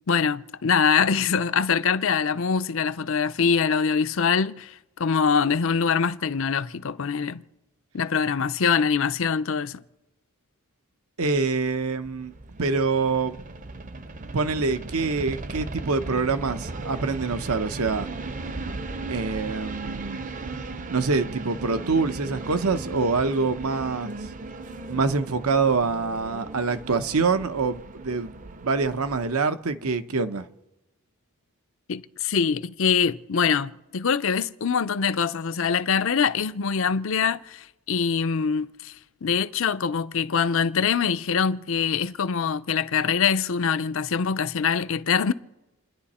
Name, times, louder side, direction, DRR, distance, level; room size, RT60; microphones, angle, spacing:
voice 1, 0.1-7.4 7.9-9.8 31.9-38.9 39.2-45.3, left 6 dB, 60° left, 0.6 m, -24 dB
voice 2, 11.2-12.3 12.6-13.4 14.3-18.1 19.1-20.2 20.9-24.3 24.9-30.5, right 4 dB, 75° right, 0.9 m, -25 dB
sound 1, 11.9-29.3, right 2 dB, 35° right, 0.7 m, -37 dB
29.0 x 10.5 x 4.3 m
head